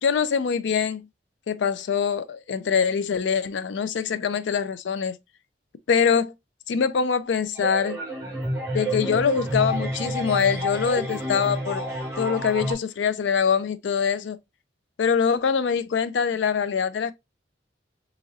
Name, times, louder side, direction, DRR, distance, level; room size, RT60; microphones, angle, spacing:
voice 1, 0.0-1.0 1.5-5.2 5.9-6.3 6.7-8.0 8.7-11.8 12.2-14.4 15.0-17.1, left 6 dB, 90° left, 0.4 m, -24 dB
sound 1, 7.6-12.7, right 1 dB, 15° right, 1.3 m, -29 dB
3.9 x 3.0 x 2.4 m
head